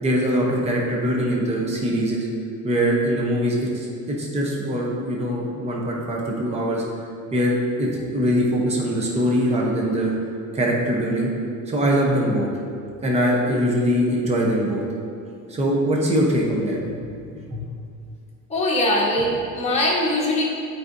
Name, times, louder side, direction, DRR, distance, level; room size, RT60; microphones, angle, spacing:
voice 1, 0.0-2.3 2.6-6.8 7.3-10.1 10.5-11.3 11.7-12.5 13.0-14.8 15.5-16.9 17.5-17.7, equal, 20° right, -2 dB, 0.8 m, -22 dB
voice 2, 18.5-20.4, left 1 dB, 20° left, -5 dB, 1.2 m, -21 dB
8.9 x 4.8 x 2.6 m, 2.4 s
cardioid pair, 165°, 32 cm